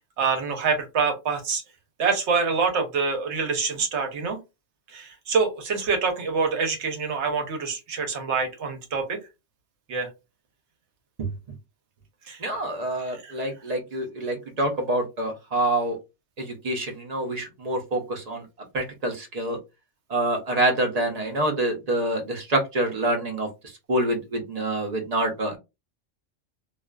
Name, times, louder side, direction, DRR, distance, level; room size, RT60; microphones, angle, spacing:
voice 1, 0.2-1.6 2.0-4.4 4.9-9.2 9.9-10.1 12.3-12.4 13.2-13.3, right 5 dB, 70° right, 5 dB, 1.0 m, -26 dB
voice 2, 12.4-16.0 16.4-18.4 18.7-19.6 20.1-23.5 23.9-25.6, right 1 dB, 40° right, 3 dB, 0.6 m, -26 dB
2.4 x 2.3 x 2.2 m, 0.25 s
omnidirectional pair, 1.3 m